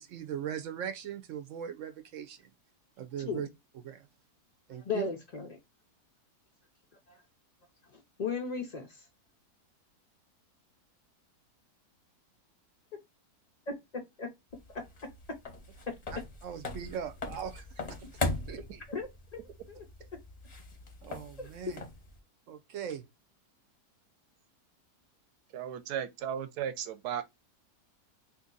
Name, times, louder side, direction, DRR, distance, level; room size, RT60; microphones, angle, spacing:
voice 1, 0.0-2.5 3.0-3.5 3.7-4.1 4.7-5.1 16.4-18.2 18.5-18.8 21.0-21.8 22.5-23.1, right 8 dB, 65° right, 0.8 m, -40 dB
voice 2, 4.8-5.6 7.1-7.2 7.9-9.0 13.7-14.3 14.7-15.1 15.9-16.0 18.5-18.6 18.9-19.1 19.3-19.4 19.7-19.8 21.4-21.5, left 5 dB, 75° left, 0.3 m, -36 dB
sound 1, 14.5-22.2, left 3 dB, 35° left, 0.6 m, -40 dB
voice 3, 25.5-27.2, right 9 dB, 90° right, 1.2 m, -35 dB
2.8 x 2.7 x 3.8 m
omnidirectional pair, 1.7 m